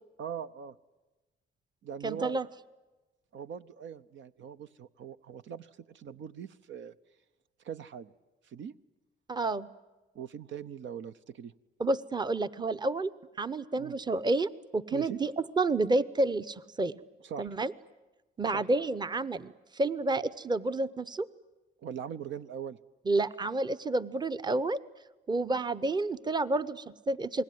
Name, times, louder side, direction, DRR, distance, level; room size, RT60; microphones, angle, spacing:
voice 1, 0.2-0.8 1.8-2.4 3.3-7.0 7.6-8.1 8.4-8.7 10.1-11.5 13.8-14.0 14.9-15.2 17.2-17.5 18.5-18.7 21.8-22.8, right 8 dB, 70° right, 12 dB, 0.8 m, -41 dB
voice 2, 2.0-2.5 9.3-9.7 11.8-13.1 13.4-17.0 17.4-17.7 18.4-21.3 23.1-24.8 25.3-27.4, right 2 dB, 20° right, 15 dB, 0.9 m, -30 dB
28.5 x 20.0 x 9.4 m, 1.1 s
cardioid pair, 90°, 20 cm